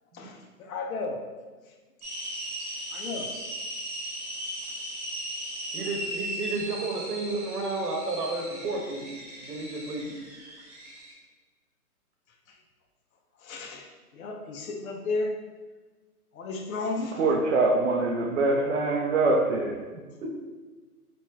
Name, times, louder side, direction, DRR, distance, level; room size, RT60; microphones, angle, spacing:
voice 1, 0.1-1.2 1.7-1.8 2.9-3.3 12.5-12.6 13.4-13.9 14.1-15.3 16.3-17.2, left 3 dB, 65° left, 2 dB, 0.6 m, -33 dB
sound 1, 2.0-11.1, right 1 dB, 25° right, 0.8 m, -37 dB
voice 2, 5.7-10.1 19.9-20.4, right 2 dB, 80° right, 1 dB, 1.0 m, -32 dB
voice 3, 17.2-19.8, right 2 dB, 50° right, -1 dB, 0.5 m, -24 dB
3.0 x 2.9 x 3.4 m, 1.3 s
hypercardioid pair, 160°, 46 cm